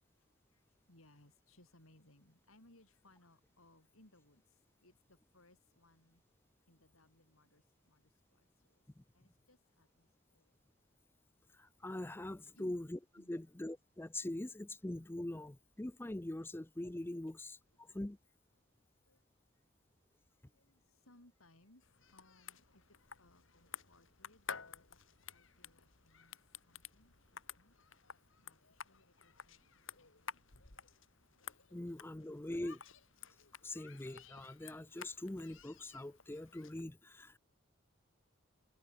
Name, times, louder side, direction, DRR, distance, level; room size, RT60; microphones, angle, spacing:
voice 1, 0.2-6.2 6.7-8.8 9.1-10.5 12.5-12.8 13.2-13.3 19.1-19.2 19.5-19.6 20.3-21.8 22.1-25.0 25.3-26.3 26.7-27.8 28.4-30.8, left 1 dB, 85° left, 7.2 m, -67 dB
voice 2, 11.5-13.0 13.3-18.2 31.7-32.8 33.6-37.4, left 1 dB, 10° left, 0.5 m, -43 dB
sound 1, 21.8-36.8, left 7 dB, 65° left, 2.6 m, -53 dB
head